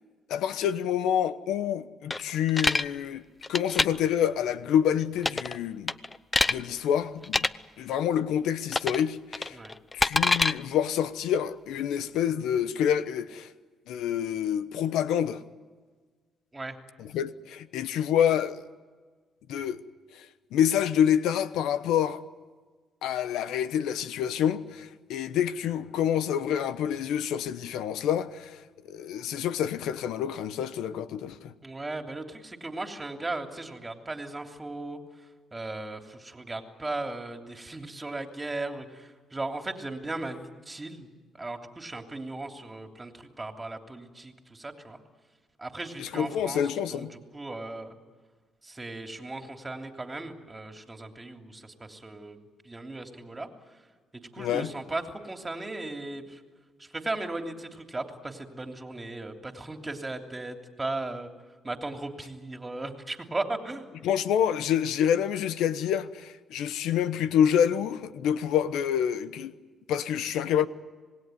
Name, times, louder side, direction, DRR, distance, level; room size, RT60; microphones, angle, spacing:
voice 1, 0.3-3.2 3.5-5.9 6.5-7.5 7.8-9.6 9.9-13.5 13.9-15.4 17.0-18.6 19.5-19.8 20.1-20.3 20.5-22.2 23.0-28.6 28.9-31.5 46.0-47.1 54.4-54.7 64.0-69.5 69.9-70.7, left 9 dB, 90° left, 1.0 m, -27 dB
sound 1, 2.1-2.8 3.4-3.9 5.2-5.6 5.9-6.6 7.2-7.5 8.7-9.0 9.3-10.5, left 3 dB, 25° left, 0.8 m, -25 dB
voice 2, 31.6-35.0 35.5-41.1 41.3-45.0 45.6-47.1 47.3-48.0 48.6-53.5 54.1-56.4 56.8-61.3 61.6-63.9, right 2 dB, 20° right, 3.1 m, -37 dB
26.5 x 19.5 x 9.3 m
cardioid pair, 90°, 0 cm